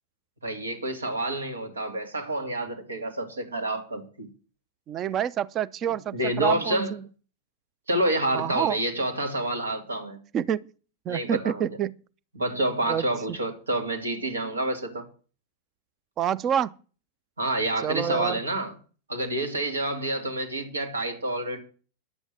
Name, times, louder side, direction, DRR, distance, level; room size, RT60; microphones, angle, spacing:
voice 1, 0.4-4.3 5.8-6.9 7.9-10.2 11.1-11.7 12.3-15.0 17.4-18.7 19.1-21.6, right 1 dB, 75° right, 2.4 m, -28 dB
voice 2, 4.9-7.0 8.3-8.8 10.3-10.6 11.1-11.9 12.9-13.0 16.2-16.7 17.8-18.4, right 9 dB, 30° right, 0.6 m, -27 dB
11.0 x 8.1 x 6.1 m
figure-of-eight pair, 90°, 0 cm